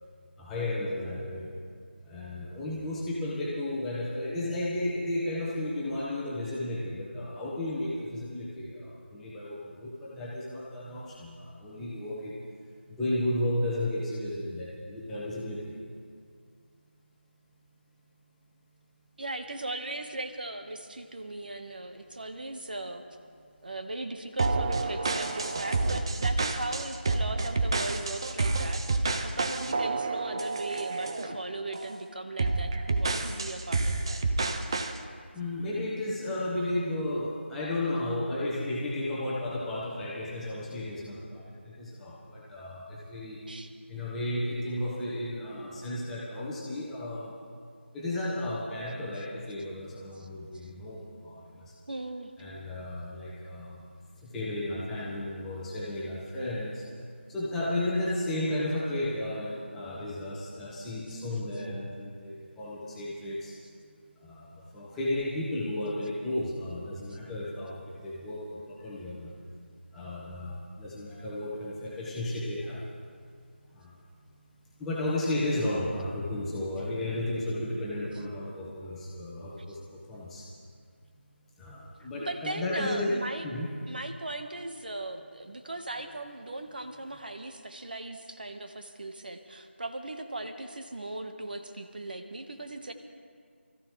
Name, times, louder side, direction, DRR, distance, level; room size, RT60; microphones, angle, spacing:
voice 1, 0.4-1.6 2.0-12.4 12.9-15.7 35.3-43.4 43.9-47.3 47.9-51.8 52.4-53.9 54.1-56.8 57.3-63.5 64.2-69.3 69.9-72.8 73.7-74.0 74.8-80.5 81.6-83.2 83.4-83.7, left 1 dB, 5° left, -8 dB, 1.5 m, -33 dB
voice 2, 19.2-23.0 23.6-28.8 29.2-34.2 43.5-43.7 50.2-50.3 50.6-50.7 51.9-52.3 67.1-67.2 79.7-79.8 82.2-83.5 83.9-92.9, right 2 dB, 45° right, 6 dB, 1.5 m, -38 dB
sound 1, 24.4-31.3 31.7-32.0 32.4-35.0, right 3 dB, 25° right, 0.7 m, -29 dB
27.5 x 14.5 x 3.3 m, 2.1 s
figure-of-eight pair, 165°, 7 cm